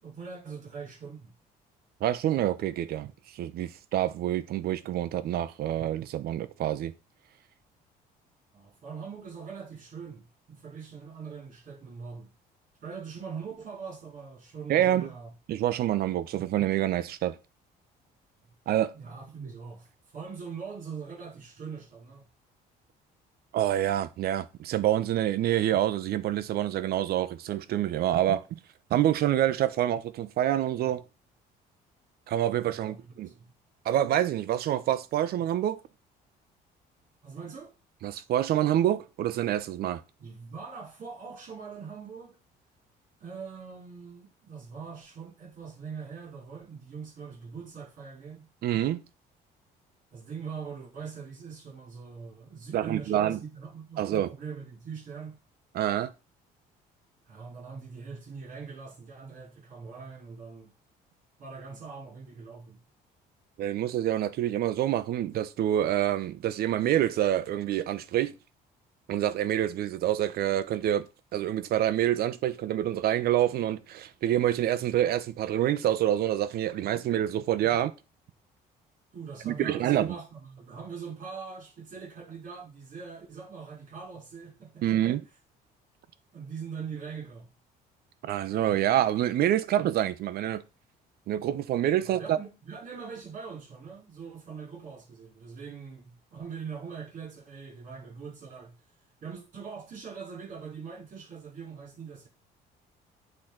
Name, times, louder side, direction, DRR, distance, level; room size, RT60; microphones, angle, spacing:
voice 1, 0.0-1.3 8.5-12.3 12.8-15.3 18.9-22.3 32.7-33.5 37.2-37.7 40.2-42.4 43.2-48.5 50.1-55.4 57.3-60.7 61.4-62.8 79.1-85.2 86.3-87.5 92.0-98.7 99.2-102.3, right 5 dB, 50° right, 5.8 m, -42 dB
voice 2, 2.0-6.9 14.7-15.1 15.5-17.4 18.7-18.9 23.5-28.6 28.9-31.0 32.3-33.3 33.8-35.8 38.0-40.0 48.6-49.0 52.7-53.4 54.0-54.3 55.7-56.1 63.6-68.3 69.1-71.0 71.3-77.9 79.4-80.1 84.8-85.2 88.2-90.6 91.3-92.4, right 12 dB, 65° right, 0.8 m, -27 dB
8.5 x 3.9 x 5.9 m
cardioid pair, 110°, 17 cm